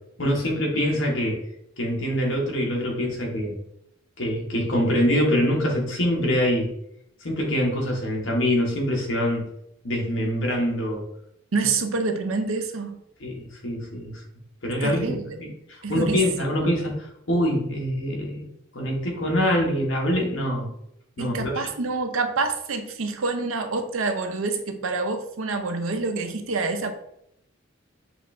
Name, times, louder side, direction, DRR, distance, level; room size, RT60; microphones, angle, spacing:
voice 1, 0.2-1.4 1.8-3.6 4.2-6.7 7.2-9.5 9.8-11.0 11.6-11.7 13.2-14.2 14.6-16.9 17.3-18.5 18.7-20.7 21.2-21.5, equal, 70° left, -1 dB, 1.3 m, -24 dB
voice 2, 11.5-13.0 14.8-15.6 15.8-16.2 16.6-16.8 21.2-26.9, right 3 dB, 90° right, 7 dB, 0.6 m, -27 dB
6.0 x 2.5 x 3.2 m, 0.77 s
head